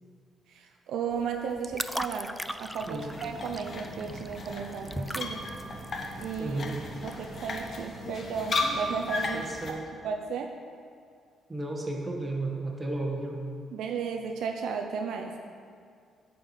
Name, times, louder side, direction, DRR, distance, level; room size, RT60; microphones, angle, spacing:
voice 1, 0.5-5.4 6.2-6.6 7.0-9.5 10.0-10.5 13.7-15.3, right 6 dB, 80° right, 3 dB, 0.6 m, -34 dB
sound 1, 1.1-7.9, equal, ahead, 0.3 m, -40 dB
sound 2, 2.8-9.8, right 3 dB, 65° right, 1.0 m, -46 dB
sound 3, 3.1-9.7, left 2 dB, 50° left, 1.0 m, -35 dB
voice 2, 6.4-6.8 9.3-9.8 11.5-13.4, right 2 dB, 20° right, -1 dB, 1.6 m, -33 dB
8.5 x 4.7 x 7.3 m, 2.3 s
cardioid pair, 90°, 0 cm